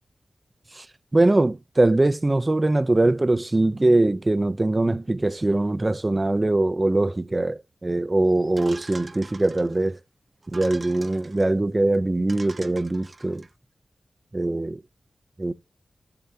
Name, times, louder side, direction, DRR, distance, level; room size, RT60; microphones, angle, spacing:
voice 1, 1.1-10.0 10.5-13.5 14.3-14.8 15.4-15.5, right 2 dB, 30° right, 0.7 m, -22 dB
sound 1, 8.6-9.9 10.4-11.5 11.9-12.0 12.3-13.5, right 3 dB, 45° right, 1.0 m, -44 dB
12.5 x 7.1 x 2.8 m
cardioid pair, 60°, 0 cm